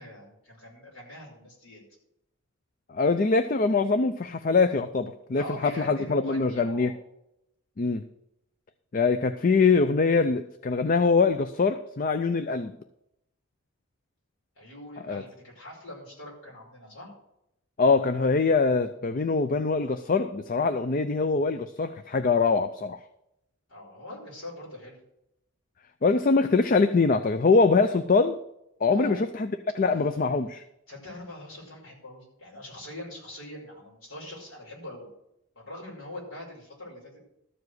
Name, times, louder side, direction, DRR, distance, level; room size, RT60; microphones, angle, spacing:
voice 1, 0.0-1.8 5.4-6.9 14.6-17.1 23.7-25.0 28.9-29.2 30.9-35.1 35.6-37.2, left 1 dB, 60° left, 5.3 m, -42 dB
voice 2, 2.9-6.9 7.8-8.1 8.9-12.7 15.1-15.2 17.8-23.0 26.0-28.4 28.8-29.5 29.7-30.6, left 4 dB, 40° left, 0.4 m, -23 dB
13.5 x 4.9 x 7.9 m
head